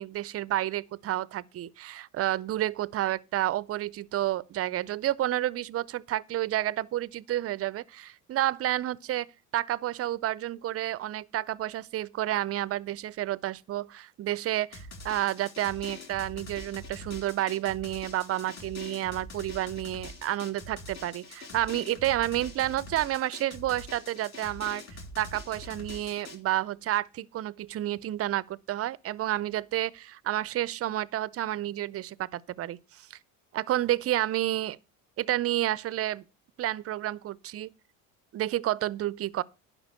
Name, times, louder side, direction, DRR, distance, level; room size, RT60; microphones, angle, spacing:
voice 1, 0.0-9.3 9.5-24.8 25.2-33.1 33.5-34.8 35.2-36.2 36.6-37.7 38.3-39.4, right 14 dB, 40° right, 0.5 m, -30 dB
Drum, 14.7-26.4, left 2 dB, 40° left, 3.2 m, -44 dB
10.5 x 5.7 x 6.8 m
supercardioid pair, 90°, 38 cm